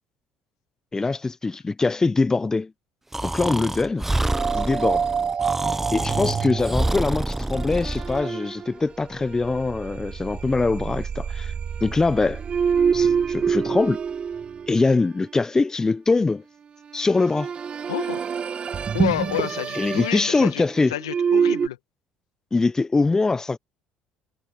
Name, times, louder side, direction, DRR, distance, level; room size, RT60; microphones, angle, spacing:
voice 1, 0.9-2.7 3.2-4.1 4.5-5.1 5.9-11.5 11.8-12.4 12.9-14.0 14.7-16.4 16.9-17.5 19.7-20.9 22.5-23.6, left 3 dB, 20° left, 1.0 m, -23 dB
Breathing, 3.1-8.2, right 1 dB, 10° right, 1.0 m, -27 dB
sound 1, 4.2-15.4 16.9-21.7, right 6 dB, 40° right, 2.3 m, -27 dB
voice 2, 17.9-18.2 18.9-20.6 20.9-21.8, left 14 dB, 90° left, 2.1 m, -29 dB
hypercardioid pair, 65°, 3 cm